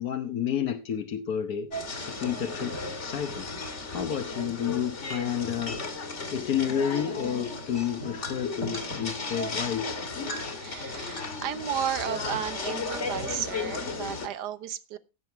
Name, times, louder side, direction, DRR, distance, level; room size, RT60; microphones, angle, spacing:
voice 1, 0.0-1.7 2.0-3.5 3.9-6.0 6.3-10.0, left 9 dB, 60° left, 1.5 m, -30 dB
sound 1, 1.7-14.3, left 3 dB, 40° left, 2.2 m, -34 dB
voice 2, 10.6-15.0, right 9 dB, 70° right, 1.5 m, -33 dB
15.5 x 7.7 x 4.5 m
omnidirectional pair, 1.9 m